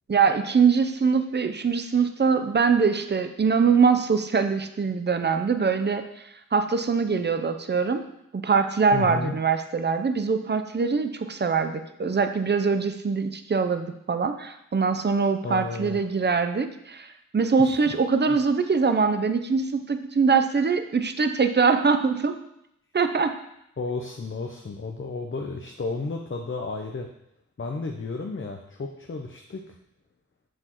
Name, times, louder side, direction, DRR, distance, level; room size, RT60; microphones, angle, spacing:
voice 1, 0.1-6.0 6.5-8.0 8.3-22.4 22.9-23.3, right 5 dB, 35° right, 8 dB, 0.6 m, -23 dB
voice 2, 8.9-9.3 15.4-16.0 17.6-17.9 18.3-18.4 23.8-27.1 27.6-29.7, left 3 dB, 40° left, 2 dB, 0.7 m, -33 dB
7.8 x 6.9 x 3.0 m, 0.79 s
wide cardioid pair, 65°, 30 cm